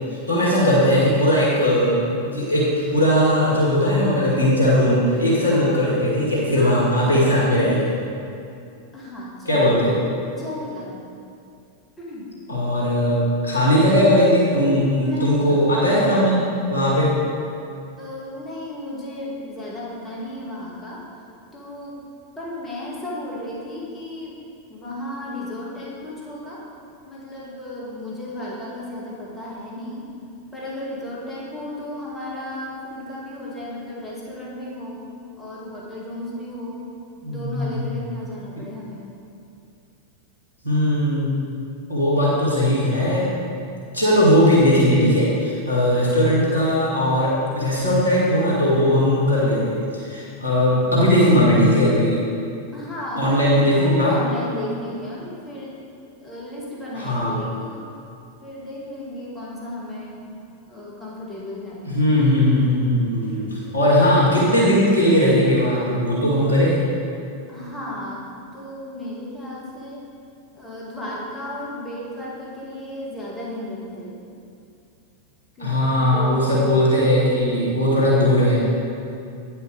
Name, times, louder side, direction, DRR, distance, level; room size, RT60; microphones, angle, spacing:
voice 1, 0.3-8.0 9.5-10.0 12.5-17.1 37.2-37.8 40.6-41.3 41.9-43.3 43.9-52.2 53.2-54.2 57.0-57.4 61.9-66.8 75.6-78.6, equal, 90° right, -6 dB, 2.1 m, -18 dB
voice 2, 5.3-5.7 6.5-7.2 8.9-9.8 10.2-11.0 12.0-12.3 14.9-16.1 18.0-21.1 21.5-22.0 22.4-24.4 24.7-26.7 27.0-30.1 30.5-35.0 35.4-36.9 37.3-39.1 52.7-55.8 56.2-57.9 58.4-60.3 60.7-61.9 63.4-63.8 67.5-68.3 68.5-70.1 70.5-74.2 75.6-76.7, left 1 dB, 15° left, -6 dB, 2.1 m, -34 dB
9.5 x 5.8 x 5.0 m, 2.5 s
figure-of-eight pair, 90°, 0 cm